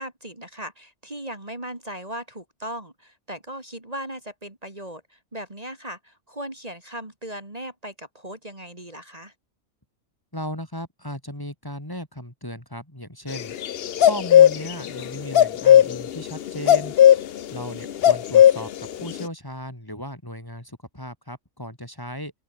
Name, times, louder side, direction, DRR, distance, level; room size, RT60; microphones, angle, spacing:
voice 1, 0.0-9.3 17.5-18.0, right 1 dB, 25° right, 3.4 m, -38 dB
voice 2, 10.3-13.6 14.0-16.9 17.5-22.3, equal, 15° left, 3.7 m, -36 dB
sound 1, 13.3-15.0 15.3-19.2, left 10 dB, 55° left, 0.7 m, -15 dB
open air
omnidirectional pair, 1.5 m